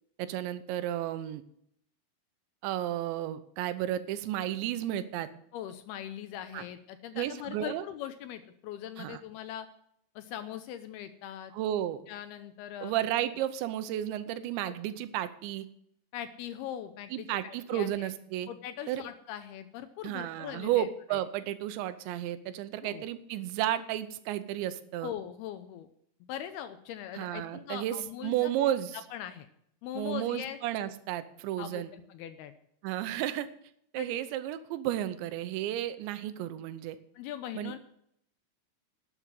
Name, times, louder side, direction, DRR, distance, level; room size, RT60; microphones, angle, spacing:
voice 1, 0.2-1.4 2.6-5.3 6.5-6.6 7.1-7.9 9.0-9.2 11.5-12.0 12.8-15.7 17.1-18.5 18.9-19.0 20.0-25.1 27.1-29.1 29.9-31.9 32.8-33.5 33.9-37.0 37.5-37.7, right 12 dB, 85° right, 12 dB, 3.1 m, -33 dB
voice 2, 5.5-9.7 10.2-11.5 12.1-13.0 14.7-14.8 16.1-18.1 18.5-21.2 22.8-23.1 25.0-25.9 26.2-28.5 29.1-29.5 29.8-30.9 31.6-32.5 34.0-34.2 37.2-37.8, left 11 dB, 80° left, 10 dB, 2.4 m, -41 dB
12.0 x 8.1 x 7.6 m, 0.71 s
omnidirectional pair, 5.1 m